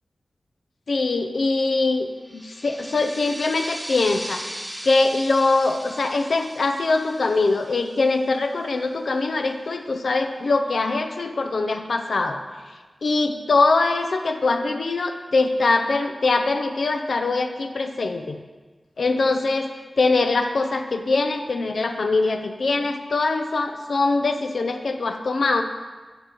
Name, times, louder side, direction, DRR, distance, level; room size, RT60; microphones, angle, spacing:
voice 1, 0.9-4.4 4.8-12.4 13.0-18.4 19.0-19.7 20.0-25.6, left 3 dB, 75° left, 6 dB, 0.6 m, -22 dB
sound 1, 2.2-8.5, equal, 10° right, 1.3 m, -38 dB
11.5 x 3.9 x 6.7 m, 1.4 s
wide cardioid pair, 95°, 0 cm